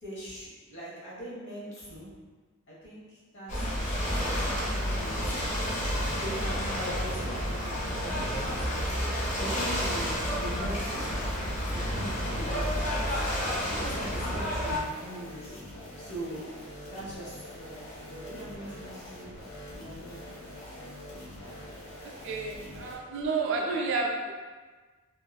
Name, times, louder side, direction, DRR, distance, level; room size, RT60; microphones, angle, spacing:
voice 1, 0.0-2.2 2.7-5.5 6.2-9.0 9.4-11.2 11.7-13.3 13.7-15.6 16.0-16.6 16.9-19.3 19.7-20.3, equal, 55° left, -7 dB, 1.1 m, -41 dB
Ocean / Boat Water vehicle, 3.5-14.8, equal, 35° left, 0.5 m, -30 dB
sound 1, 4.0-23.0, left 1 dB, 75° left, 0.7 m, -44 dB
voice 2, 22.0-24.3, right 3 dB, 55° right, 0 dB, 0.4 m, -31 dB
2.9 x 2.5 x 2.3 m, 1.4 s
head